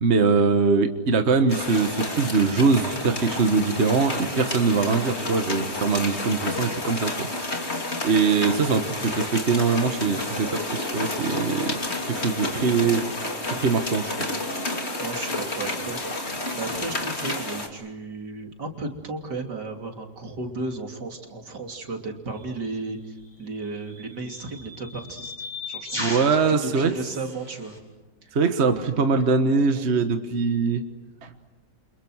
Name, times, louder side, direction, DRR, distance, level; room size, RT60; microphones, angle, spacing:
voice 1, 0.0-7.5 8.0-11.8 12.1-13.1 13.4-14.1 26.0-26.9 28.3-30.8 31.2-31.3, right 4 dB, 40° right, 7 dB, 1.6 m, -22 dB
sound 1, 1.5-17.7, left 2 dB, 40° left, 3.3 m, -30 dB
voice 2, 14.7-16.2 16.5-27.8 28.2-28.4, right 3 dB, 75° right, 3 dB, 3.6 m, -34 dB
sound 2, 22.4-22.6 23.6-27.8, left 2 dB, 15° left, 7.1 m, -37 dB
29.0 x 27.5 x 6.4 m, 1.1 s
omnidirectional pair, 1.8 m